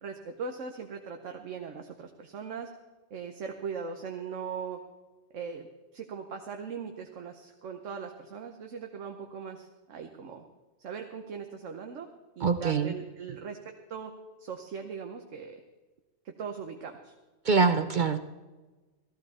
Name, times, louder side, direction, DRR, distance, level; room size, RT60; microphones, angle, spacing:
voice 1, 0.0-2.7 3.1-4.8 5.3-5.7 5.9-10.4 10.8-12.1 12.4-14.1 14.4-15.6 16.2-17.1, right 6 dB, 70° right, 4 dB, 1.3 m, -39 dB
voice 2, 12.4-12.9 17.4-18.2, right 5 dB, 50° right, 9 dB, 0.6 m, -24 dB
15.0 x 15.0 x 4.2 m, 1.2 s
omnidirectional pair, 1.3 m